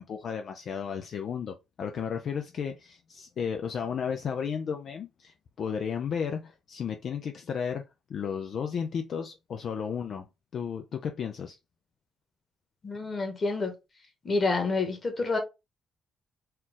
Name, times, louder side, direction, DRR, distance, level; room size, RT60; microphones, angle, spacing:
voice 1, 0.0-7.8 8.1-10.3 10.5-11.6, left 7 dB, 60° left, 0.5 m, -33 dB
voice 2, 12.8-13.7 14.2-15.4, left 3 dB, 35° left, 1.6 m, -28 dB
4.4 x 2.4 x 3.8 m
cardioid pair, 90°, 0 cm